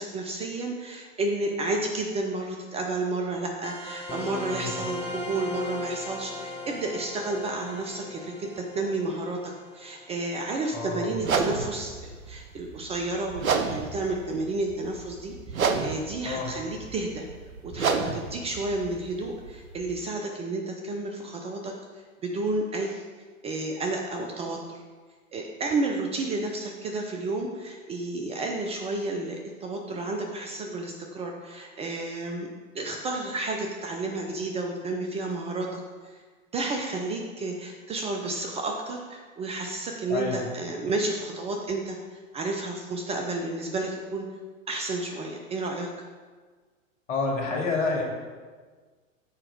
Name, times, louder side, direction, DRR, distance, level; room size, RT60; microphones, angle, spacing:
voice 1, 0.0-17.3 17.6-21.7 22.2-23.0 23.4-24.8 25.3-32.5 32.7-36.2 36.5-44.3 44.7-45.9, right 2 dB, 15° right, 1 dB, 0.5 m, -31 dB
sound 1, 3.6-10.7, left 2 dB, 10° left, 1.3 m, -38 dB
voice 2, 10.7-11.1 16.3-16.5 40.1-40.4 47.1-48.0, left 4 dB, 60° left, -1 dB, 2.1 m, -28 dB
sound 2, 11.2-19.9, right 5 dB, 85° right, 0.7 m, -31 dB
7.1 x 4.8 x 4.5 m, 1.5 s
hypercardioid pair, 105°, 41 cm